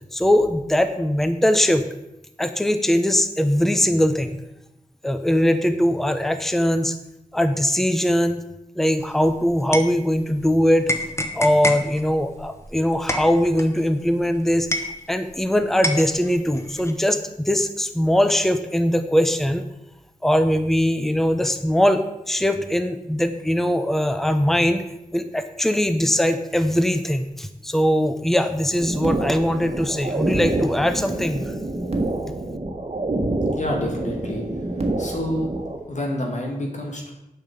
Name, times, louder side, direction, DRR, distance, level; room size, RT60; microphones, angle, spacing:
voice 1, 0.1-1.8 2.4-4.4 5.0-7.0 7.3-8.4 8.8-10.8 11.3-14.7 15.1-19.6 20.2-22.0 22.3-24.8 25.1-31.4, equal, ahead, 9 dB, 0.7 m, -21 dB
stirring tea, 9.0-10.5 10.9-15.5 15.8-16.9, equal, 20° left, 1.1 m, -28 dB
sound 1, 28.8-35.8, right 2 dB, 45° right, 1.6 m, -27 dB
voice 2, 33.5-34.4 34.8-35.5 35.9-37.1, left 1 dB, 55° left, 0 dB, 2.1 m, -28 dB
8.7 x 5.8 x 7.8 m, 0.91 s
wide cardioid pair, 85°, 14 cm